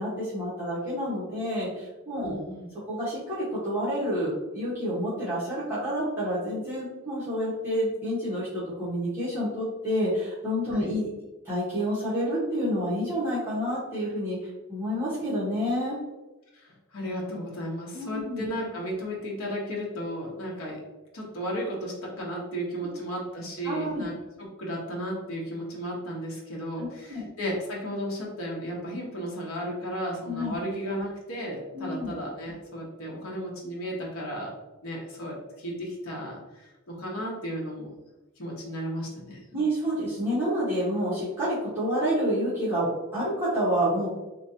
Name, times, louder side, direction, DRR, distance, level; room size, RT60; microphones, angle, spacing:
voice 1, 0.0-2.4 2.9-11.1 11.4-14.4 14.7-16.0 17.9-18.5 23.6-24.0 26.8-27.3 30.3-30.6 31.7-32.1 39.5-44.1, equal, 10° right, -12 dB, 1.2 m, -28 dB
voice 2, 2.2-2.7 10.7-10.9 16.6-20.8 21.1-34.5 34.8-36.4 36.9-37.9 38.4-39.6, equal, 80° left, -2 dB, 1.0 m, -34 dB
3.3 x 2.9 x 2.7 m, 1.1 s
head